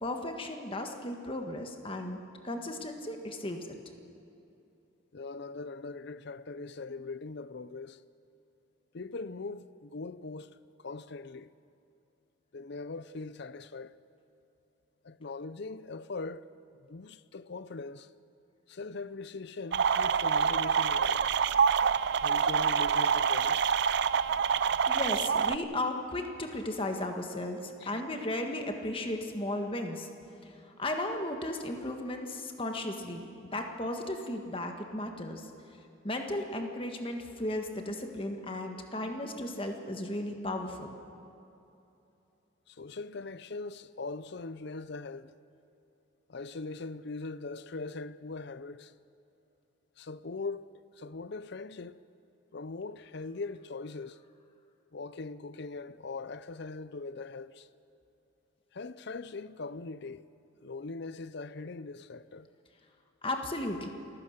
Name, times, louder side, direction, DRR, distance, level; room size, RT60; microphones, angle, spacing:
voice 1, 0.0-2.2 2.4-3.7 24.9-30.1 30.4-30.5 30.8-35.5 36.0-40.9 63.2-63.9, left 1 dB, 25° left, 1.6 m, -35 dB
voice 2, 5.1-8.0 8.9-11.5 12.5-14.0 15.0-16.5 16.8-18.1 18.7-21.3 22.2-23.6 27.8-28.0 42.7-45.3 46.3-48.9 50.0-52.0 52.5-54.2 54.9-57.7 58.7-60.2 60.6-62.5, left 3 dB, 55° left, 0.6 m, -41 dB
sound 1, 19.7-25.6, right 6 dB, 55° right, 0.4 m, -26 dB
28.0 x 15.0 x 6.6 m
head